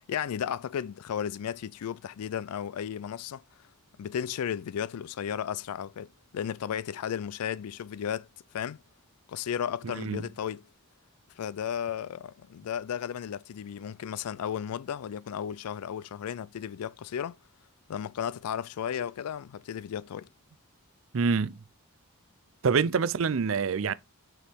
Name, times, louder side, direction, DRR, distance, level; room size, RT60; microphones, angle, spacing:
voice 1, 0.1-3.4 4.0-6.1 6.3-8.3 8.5-8.8 9.3-10.6 11.4-17.4 17.9-20.3, left 8 dB, 85° left, 0.4 m, -34 dB
voice 2, 10.0-10.3 21.1-21.5 22.6-23.9, right 5 dB, 60° right, 0.5 m, -26 dB
7.1 x 4.6 x 3.5 m
head